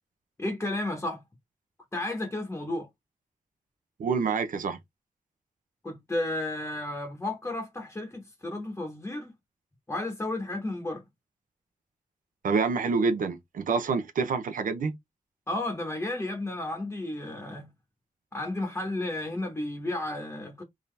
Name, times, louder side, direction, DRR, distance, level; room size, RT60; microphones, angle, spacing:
voice 1, 0.4-1.2 1.9-2.9 5.8-9.3 9.9-11.0 15.5-17.7 18.3-20.6, left 2 dB, 15° left, 0.9 m, -32 dB
voice 2, 4.0-4.8 12.4-14.9, right 4 dB, 80° right, 0.7 m, -27 dB
3.7 x 2.7 x 3.2 m
wide cardioid pair, 160°, 14 cm